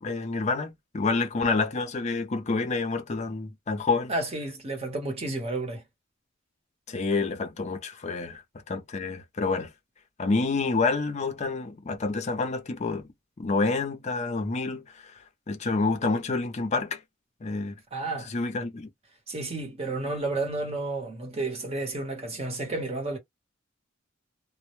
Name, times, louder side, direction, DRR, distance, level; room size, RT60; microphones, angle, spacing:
voice 1, 0.0-4.1 6.9-8.4 8.7-9.7 10.2-13.1 13.4-14.8 15.5-17.0 17.4-17.7 18.3-18.9, left 3 dB, 35° left, 0.5 m, -28 dB
voice 2, 4.1-5.8 17.9-18.3 19.3-23.2, right 2 dB, 30° right, 0.9 m, -31 dB
2.1 x 2.0 x 3.0 m
head